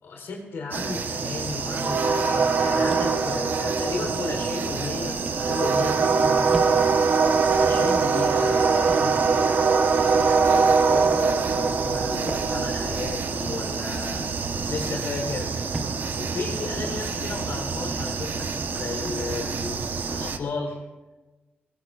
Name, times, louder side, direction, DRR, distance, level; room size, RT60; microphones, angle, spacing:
voice 1, 0.0-6.9 7.5-9.7 10.0-14.3 14.7-15.5 16.1-20.8, left 4 dB, 90° left, 0 dB, 4.0 m, -34 dB
sound 1, 0.7-20.4, right 5 dB, 60° right, 1.1 m, -24 dB
sound 2, 2.9-3.3 4.0-4.3 5.3-5.5 6.5-6.8 7.7-7.9 8.9-9.1 10.0-10.2 11.0-11.3 12.3-12.5 13.4-13.6 14.5-14.8 15.7-16.0 16.8-17.0 17.9-18.2 19.0-19.3, right 1 dB, 20° right, 1.3 m, -37 dB
23.0 x 20.0 x 2.5 m, 1.2 s
wide cardioid pair, 135°, 4 cm